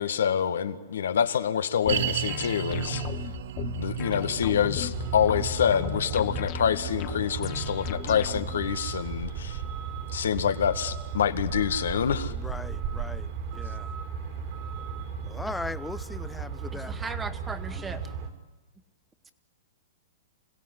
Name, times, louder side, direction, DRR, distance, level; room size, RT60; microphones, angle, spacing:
voice 1, 0.0-3.0 3.8-9.6 10.1-12.3, left 8 dB, 80° left, 9 dB, 1.8 m, -26 dB
sound 1, 1.9-8.7, left 17 dB, 35° left, 0.7 m, -37 dB
sound 2, 1.9-13.2 13.4-13.5 14.2-14.3, right 12 dB, 65° right, 1.0 m, -37 dB
Truck, 4.9-18.3, right 6 dB, 50° right, 4.4 m, -35 dB
voice 2, 12.3-13.3 13.5-13.9 15.3-16.9 17.7-18.0, left 3 dB, 5° left, 16 dB, 0.8 m, -39 dB
voice 3, 16.7-18.0, right 4 dB, 10° right, 10 dB, 1.9 m, -37 dB
26.5 x 16.5 x 9.9 m, 1.2 s
hypercardioid pair, 130°, 0 cm